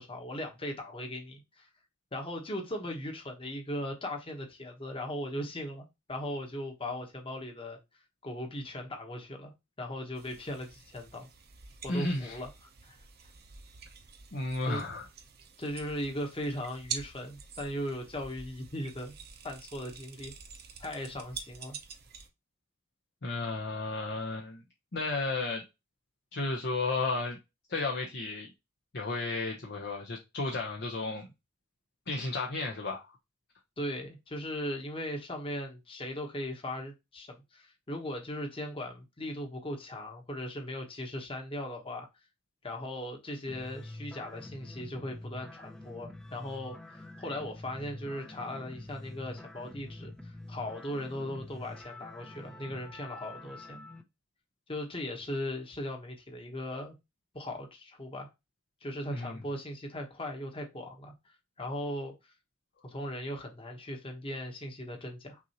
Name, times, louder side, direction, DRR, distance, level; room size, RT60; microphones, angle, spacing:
voice 1, 0.0-1.7 2.1-7.8 8.2-9.5 9.8-11.3 11.8-12.5 12.8-13.0 14.7-14.8 15.6-19.2 19.4-20.3 20.8-21.8 33.8-42.1 42.6-53.8 54.7-56.9 57.3-58.3 58.8-61.1 61.6-62.1 62.8-65.4, left 1 dB, 30° left, 1.2 m, -38 dB
sound 1, 10.2-22.3, right 6 dB, 55° right, 0.8 m, -47 dB
voice 2, 11.9-12.4 14.3-15.0 23.2-24.6 24.9-25.6 26.3-27.4 27.7-28.5 28.9-31.3 32.1-33.1 59.1-59.4, left 3 dB, 60° left, 0.8 m, -33 dB
sound 2, 43.5-54.0, left 2 dB, 5° left, 0.5 m, -46 dB
5.9 x 2.7 x 2.9 m
head